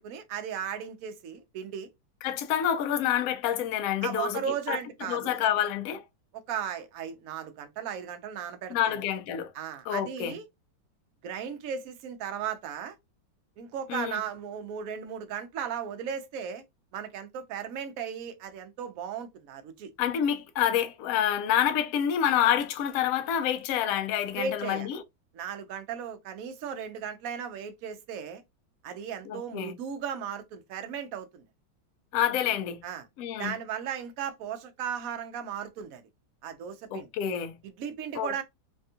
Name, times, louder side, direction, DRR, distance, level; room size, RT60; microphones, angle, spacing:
voice 1, 0.0-1.9 4.0-5.4 6.5-9.0 9.5-10.4 11.2-13.0 13.6-16.6 16.9-19.9 24.3-24.9 25.3-28.4 28.8-31.4 32.8-33.1 33.4-36.0 36.4-37.1 37.6-38.4, right 8 dB, 65° right, 0.8 m, -36 dB
voice 2, 2.2-4.4 4.7-4.8 5.1-6.0 8.7-9.5 9.9-10.4 13.9-14.2 20.0-25.0 29.3-29.7 32.1-32.8 33.2-33.5 36.9-37.5 38.1-38.4, left 10 dB, 80° left, 0.8 m, -28 dB
3.4 x 2.3 x 2.7 m
omnidirectional pair, 2.1 m